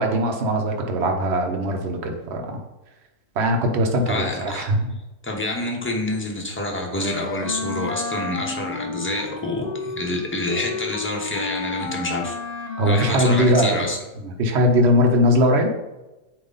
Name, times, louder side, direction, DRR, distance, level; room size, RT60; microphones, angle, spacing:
voice 1, 0.0-2.6 3.4-4.9 12.8-13.8 14.2-15.7, equal, 50° right, 3 dB, 1.0 m, -20 dB
voice 2, 4.1-4.7 5.2-12.4 12.9-14.0, left 2 dB, 10° left, 0 dB, 0.6 m, -27 dB
Wind instrument woodwind instrument, 7.0-14.1, left 3 dB, 55° left, 0.4 m, -32 dB
8.6 x 2.9 x 4.0 m, 1.0 s
omnidirectional pair, 1.7 m